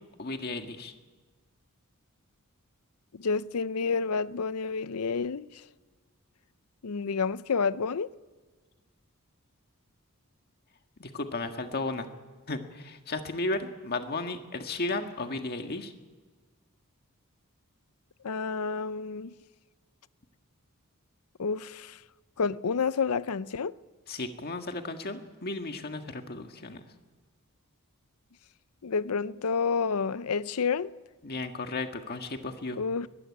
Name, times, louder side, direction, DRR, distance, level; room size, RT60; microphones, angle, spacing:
voice 1, 0.2-0.9 11.0-12.1 12.5-15.9 24.1-26.8 31.2-32.8, left 2 dB, 45° left, 1.7 m, -34 dB
voice 2, 3.1-5.5 6.8-8.1 18.2-19.3 21.4-22.0 22.4-23.8 28.8-30.9 32.8-33.1, left 5 dB, 80° left, 0.6 m, -29 dB
22.5 x 16.0 x 9.9 m
head